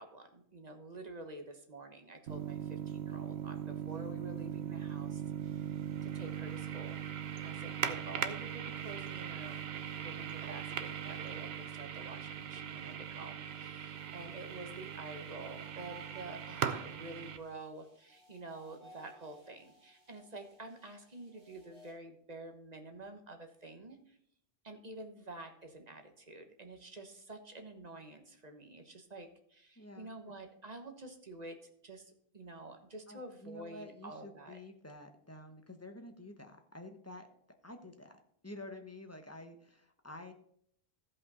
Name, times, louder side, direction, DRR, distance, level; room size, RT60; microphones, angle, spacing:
voice 1, 0.0-24.2 24.6-31.6 31.8-34.6, right 2 dB, 40° right, 5 dB, 1.1 m, -49 dB
sound 1, 2.3-17.4, right 9 dB, 75° right, 0.9 m, -40 dB
sound 2, 5.3-21.9, right 2 dB, 25° right, 3.5 m, -63 dB
voice 2, 29.8-30.1 33.1-37.3 37.6-40.3, left 1 dB, 15° left, 5 dB, 0.9 m, -50 dB
14.5 x 5.4 x 4.1 m, 0.67 s
omnidirectional pair, 1.1 m